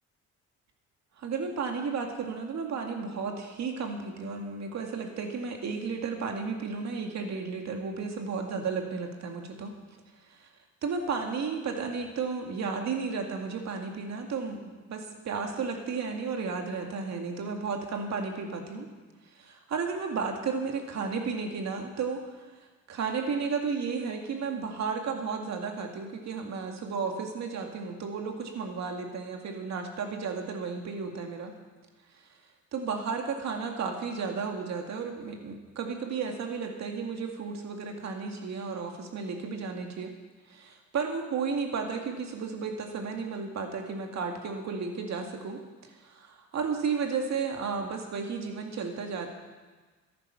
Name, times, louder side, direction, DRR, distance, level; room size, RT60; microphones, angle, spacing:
voice 1, 1.2-9.7 10.3-10.5 10.8-18.9 19.3-22.4 22.9-31.5 32.7-40.1 40.5-49.3, right 5 dB, 60° right, 3 dB, 2.2 m, -33 dB
13.5 x 11.0 x 5.8 m, 1.3 s
cardioid pair, 90°, 30 cm